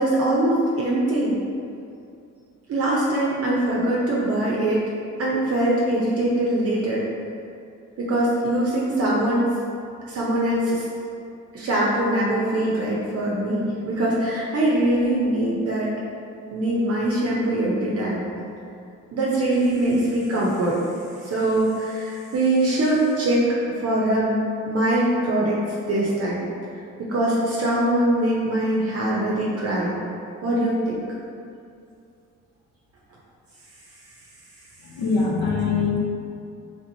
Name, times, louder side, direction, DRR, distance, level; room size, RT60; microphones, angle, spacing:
voice 1, 0.0-1.4 2.7-4.8 5.2-7.0 8.0-9.5 10.1-10.8 11.5-15.9 16.5-18.2 19.1-20.8 21.2-25.6 25.9-26.4 27.0-29.9 30.4-31.0, right 1 dB, 50° right, -5 dB, 0.6 m, -22 dB
voice 2, 34.8-36.0, left 4 dB, 60° left, -3 dB, 0.6 m, -23 dB
3.3 x 2.9 x 2.6 m, 2.5 s
cardioid pair, 90°, 30 cm